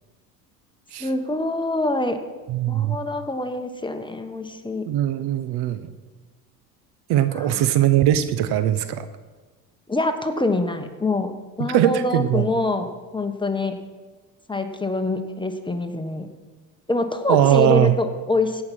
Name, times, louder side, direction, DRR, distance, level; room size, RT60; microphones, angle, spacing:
voice 1, 1.0-2.2 2.7-4.9 7.3-7.6 9.9-11.3 11.6-13.8 14.5-16.3 16.9-18.6, left 2 dB, 10° left, 7 dB, 1.3 m, -25 dB
voice 2, 2.5-3.0 4.9-5.9 7.1-9.1 11.7-12.5 17.3-18.0, right 11 dB, 60° right, 12 dB, 0.9 m, -20 dB
16.5 x 5.9 x 6.3 m, 1.3 s
hypercardioid pair, 65°, 43 cm